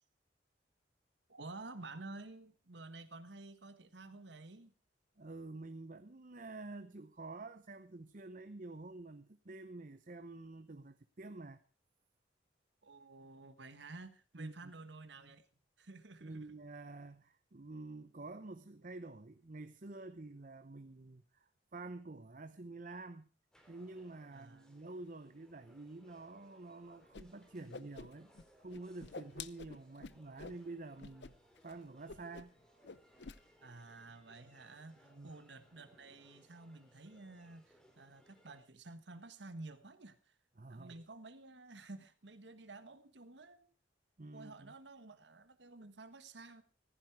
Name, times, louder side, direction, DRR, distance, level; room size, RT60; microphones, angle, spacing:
voice 1, 1.3-4.7 12.8-15.4 15.8-16.5 24.3-24.7 33.6-40.3 40.7-43.7 44.3-46.6, right 2 dB, 75° right, 1.5 m, -52 dB
voice 2, 5.2-11.6 14.3-14.7 16.2-23.3 23.7-28.3 28.6-31.4 31.6-32.5 35.0-35.3 40.6-41.0 44.2-44.7, right 2 dB, 45° right, 0.8 m, -49 dB
sound 1, 23.5-38.6, equal, 5° left, 3.4 m, -67 dB
Whoosh swoosh swish, 27.1-27.2 27.5-28.4 28.7-30.6 31.0-31.3 31.6-31.7 32.1-32.6 32.8-33.4, left 4 dB, 70° left, 0.7 m, -48 dB
15.5 x 15.0 x 4.7 m
head